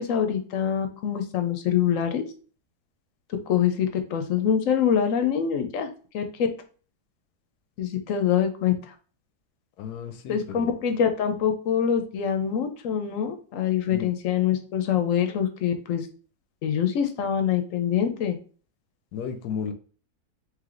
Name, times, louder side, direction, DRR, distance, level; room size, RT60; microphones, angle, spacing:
voice 1, 0.0-2.2 3.5-5.9 6.1-6.5 7.8-8.9 10.3-16.1 16.6-18.4, left 8 dB, 65° left, 7 dB, 0.9 m, -25 dB
voice 2, 9.8-10.8 13.9-14.1 19.1-19.7, left 7 dB, 90° left, 8 dB, 1.1 m, -33 dB
3.3 x 3.0 x 3.7 m, 0.40 s
omnidirectional pair, 1.6 m